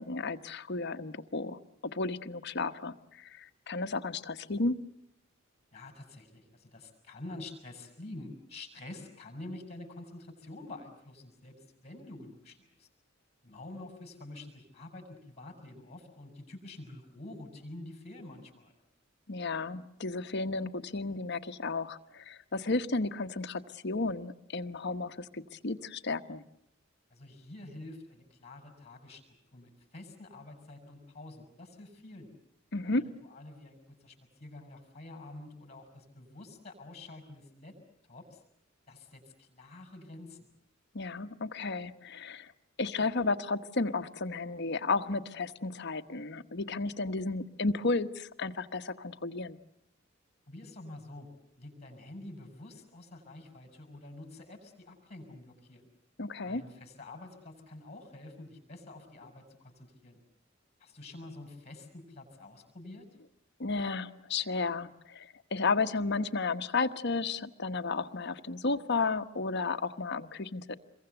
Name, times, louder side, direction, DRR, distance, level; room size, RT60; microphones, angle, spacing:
voice 1, 0.0-1.6 1.9-4.8 19.3-26.4 32.7-33.1 40.9-42.5 42.8-49.6 56.2-56.6 63.6-70.8, left 3 dB, 60° left, 8 dB, 1.2 m, -33 dB
voice 2, 5.7-12.9 13.4-18.7 27.1-29.2 29.5-32.3 32.8-33.0 33.3-37.8 38.1-38.4 38.9-40.5 50.5-51.3 51.6-55.9 56.4-60.2 60.8-63.1, left 2 dB, 35° left, 6 dB, 6.6 m, -48 dB
28.0 x 23.0 x 8.0 m, 0.77 s
head